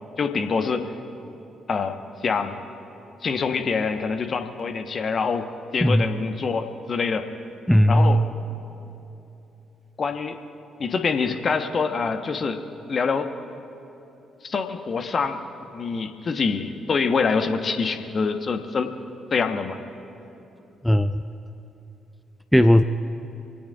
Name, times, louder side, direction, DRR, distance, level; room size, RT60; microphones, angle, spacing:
voice 1, 0.2-0.9 1.7-2.6 3.2-5.5 5.7-7.3 7.9-8.2 10.0-10.4 10.8-12.6 12.9-13.3 14.4-15.4 15.7-18.9 19.3-19.8, left 5 dB, 45° left, 7 dB, 1.3 m, -25 dB
voice 2, 7.7-8.3 20.8-21.2 22.5-22.8, equal, 5° left, 10 dB, 0.6 m, -17 dB
27.0 x 17.5 x 2.6 m, 2.9 s
figure-of-eight pair, 40°, 0 cm